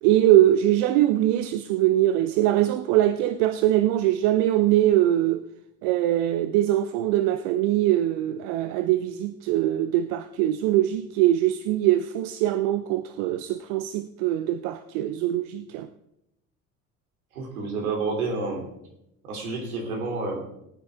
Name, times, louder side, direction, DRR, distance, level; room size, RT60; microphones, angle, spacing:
voice 1, 0.0-5.4 5.8-15.9, right 13 dB, 55° right, 0.7 m, -22 dB
voice 2, 17.3-18.7 19.3-20.4, right 3 dB, 70° right, 3.3 m, -29 dB
18.5 x 9.4 x 3.6 m
figure-of-eight pair, 65°, 44 cm